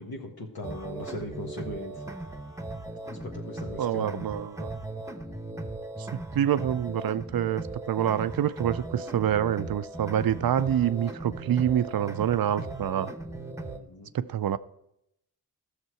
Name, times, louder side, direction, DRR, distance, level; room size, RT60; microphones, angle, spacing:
voice 1, 0.0-2.0 3.0-4.2 13.7-14.1, left 1 dB, 70° left, -1 dB, 1.6 m, -39 dB
sound 1, 0.6-13.8, right 2 dB, 10° right, 1.0 m, -38 dB
voice 2, 3.8-4.7 6.0-6.1 6.3-13.1 14.1-14.6, right 10 dB, 65° right, 15 dB, 0.5 m, -26 dB
13.5 x 6.6 x 4.7 m, 0.80 s
cardioid pair, 65°, 38 cm